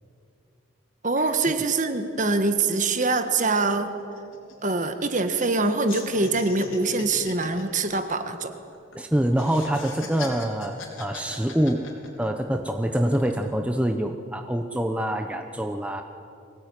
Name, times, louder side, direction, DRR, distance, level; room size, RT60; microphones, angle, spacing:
voice 1, 1.0-3.9 4.6-8.5, right 3 dB, 35° right, 8 dB, 1.6 m, -24 dB
sound 1, 4.0-5.6 5.9-9.0 9.3-12.5 12.9-13.5, left 4 dB, 75° left, 4.7 m, -41 dB
voice 2, 8.9-11.9 12.2-16.0, right 1 dB, 5° right, 5 dB, 0.8 m, -25 dB
24.5 x 18.5 x 9.8 m, 2.6 s
head